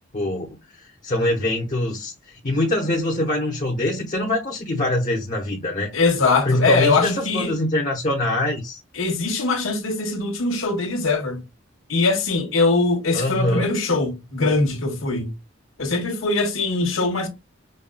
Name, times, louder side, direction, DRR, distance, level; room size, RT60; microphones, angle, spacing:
voice 1, 0.1-0.5 0.8-5.9 6.4-8.8 13.1-13.7, left 1 dB, 40° left, 0.8 m, -24 dB
voice 2, 5.9-7.5 8.9-11.4 11.9-15.3 15.8-17.3, left 3 dB, 75° left, 1.2 m, -22 dB
5.4 x 2.2 x 2.2 m
head